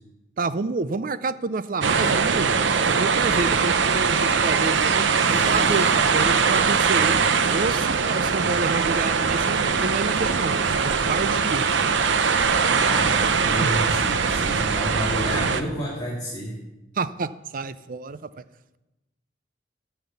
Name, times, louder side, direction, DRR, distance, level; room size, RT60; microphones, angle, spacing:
voice 1, 0.4-2.5 3.0-7.2 7.5-11.6 13.6-13.7 17.0-18.4, right 3 dB, 45° right, 15 dB, 0.5 m, -29 dB
sound 1, 1.8-15.6, right 5 dB, 80° right, 0.7 m, -21 dB
sound 2, 5.1-7.7, left 2 dB, 45° left, 1.2 m, -38 dB
voice 2, 12.8-16.6, equal, 20° left, -6 dB, 2.4 m, -30 dB
14.5 x 5.8 x 7.1 m, 0.99 s
head